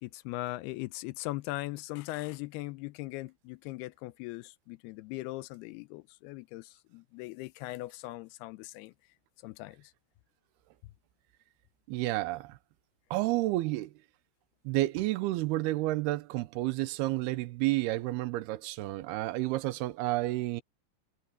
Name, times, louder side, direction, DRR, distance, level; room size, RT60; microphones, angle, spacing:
voice 1, 0.0-8.9 9.4-9.8, left 19 dB, 85° left, 2.6 m, -39 dB
voice 2, 11.9-12.6 13.1-13.9 14.7-20.6, right 18 dB, 85° right, 2.8 m, -30 dB
omnidirectional pair, 4.5 m